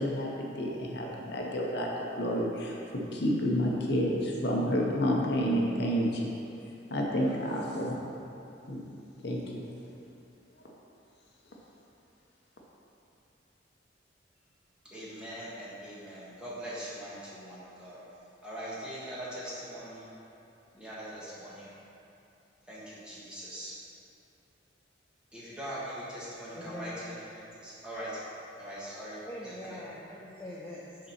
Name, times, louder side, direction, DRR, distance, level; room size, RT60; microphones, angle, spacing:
voice 1, 0.0-1.9 2.2-6.3 6.9-8.0 8.7-8.8 9.2-9.4, equal, 55° left, -2 dB, 0.8 m, -29 dB
voice 2, 14.9-18.0 18.4-20.1 20.7-21.7 22.7-23.7 25.3-28.2 28.6-29.8, equal, 5° right, -9 dB, 1.4 m, -41 dB
voice 3, 26.6-26.9 29.2-31.0, left 1 dB, 10° left, -5 dB, 0.5 m, -43 dB
6.7 x 4.0 x 5.7 m, 2.8 s
head